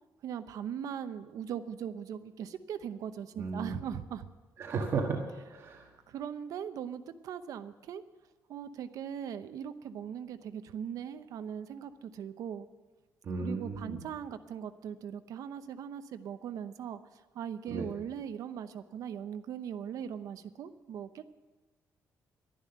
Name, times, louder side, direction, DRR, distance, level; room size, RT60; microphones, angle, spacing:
voice 1, 0.2-4.3 6.1-8.0 8.5-12.7 13.4-21.2, right 8 dB, 70° right, 10 dB, 0.8 m, -40 dB
voice 2, 3.4-3.9 4.6-5.2 5.5-5.9 13.2-14.0 17.7-17.9, right 4 dB, 45° right, 0 dB, 1.5 m, -34 dB
12.0 x 11.0 x 7.9 m, 1.2 s
cardioid pair, 170°, 6 cm